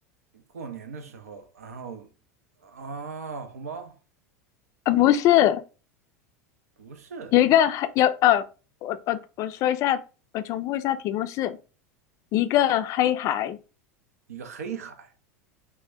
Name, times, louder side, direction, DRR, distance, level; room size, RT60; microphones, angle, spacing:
voice 1, 0.3-2.1 2.6-4.0 6.8-7.3 14.3-15.1, right 5 dB, 70° right, 0.5 m, -38 dB
voice 2, 4.9-5.6 7.3-8.4 8.8-10.0 10.3-11.6 12.3-13.6, left 12 dB, 40° left, 0.3 m, -22 dB
2.9 x 2.1 x 3.3 m
figure-of-eight pair, 80°, 8 cm